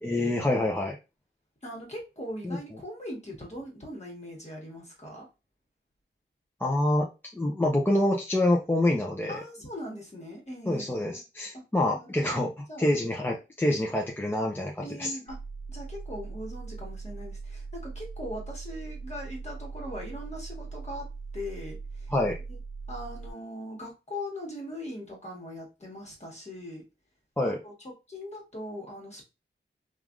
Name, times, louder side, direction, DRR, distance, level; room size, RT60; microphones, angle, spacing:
voice 1, 0.0-1.0 2.4-2.6 6.6-9.4 10.7-12.5 12.8-15.2 22.1-22.4 27.4-27.6, left 1 dB, 10° left, -1 dB, 0.5 m, -26 dB
voice 2, 1.6-5.3 9.3-11.0 11.9-12.9 14.8-15.4 15.7-21.1 21.3-22.1 22.5-22.6 22.9-26.9 27.4-29.2, left 1 dB, 35° left, -1 dB, 1.3 m, -40 dB
sound 1, 15.3-23.3, right 4 dB, 65° right, 0.5 m, -40 dB
3.2 x 2.4 x 2.4 m, 0.27 s
wide cardioid pair, 100°, 20 cm